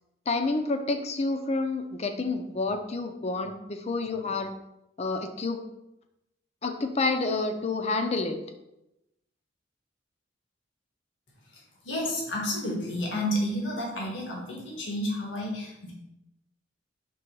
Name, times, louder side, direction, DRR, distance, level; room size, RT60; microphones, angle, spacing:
voice 1, 0.3-4.5 5.0-5.6 6.6-8.4, left 3 dB, 35° left, 6 dB, 0.6 m, -29 dB
voice 2, 11.8-15.9, left 1 dB, 90° left, -2 dB, 1.6 m, -31 dB
6.2 x 3.3 x 4.6 m, 0.88 s
head